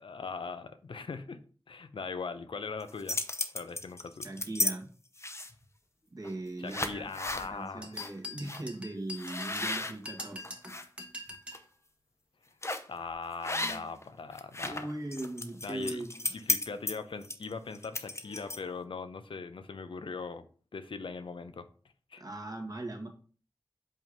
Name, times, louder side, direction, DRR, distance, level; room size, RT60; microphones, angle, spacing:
voice 1, 0.0-1.4 1.7-3.2 3.5-4.3 6.6-8.0 12.9-14.9 15.6-16.0 16.3-20.4 20.7-21.7 22.1-22.2, left 4 dB, 80° left, 10 dB, 0.6 m, -40 dB
sound 1, 2.8-4.7 5.2-5.6 6.2-6.4 6.7-7.5 7.9-8.1 8.4-8.6 9.2-10.8 11.3-11.6 12.6-12.9 13.4-14.0 14.3-18.8, left 2 dB, 30° left, 0.8 m, -34 dB
voice 2, 4.2-4.9 6.1-7.1 7.4-10.5 13.6-13.8 14.6-16.2 22.2-23.1, right 2 dB, 45° right, 2 dB, 1.7 m, -39 dB
sound 2, 7.8-11.7, left 2 dB, 15° right, 1.2 m, -44 dB
5.4 x 3.7 x 5.1 m, 0.41 s
cardioid pair, 40°, 9 cm